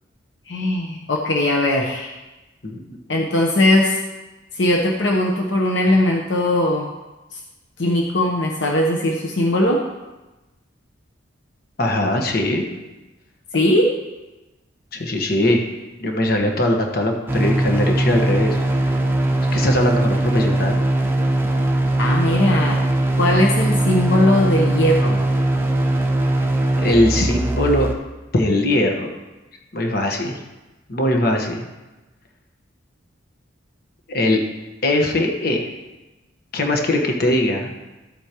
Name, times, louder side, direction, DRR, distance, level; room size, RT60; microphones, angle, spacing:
voice 1, 0.5-2.2 3.1-4.0 4.5-6.9 7.3-7.4 7.8-9.8 13.5-13.9 22.0-22.8 23.2-25.2, left 1 dB, 70° left, 0 dB, 1.0 m, -19 dB
voice 2, 2.6-3.0 11.8-12.6 14.9-15.6 16.0-18.6 19.5-20.8 26.7-27.9 28.3-29.1 29.7-30.4 30.9-31.7 34.1-34.4 34.8-35.7 36.5-37.7, left 1 dB, 50° left, 2 dB, 1.3 m, -20 dB
sound 1, 17.3-27.9, right 1 dB, 10° right, 0.8 m, -20 dB
13.0 x 8.2 x 3.0 m, 1.1 s
head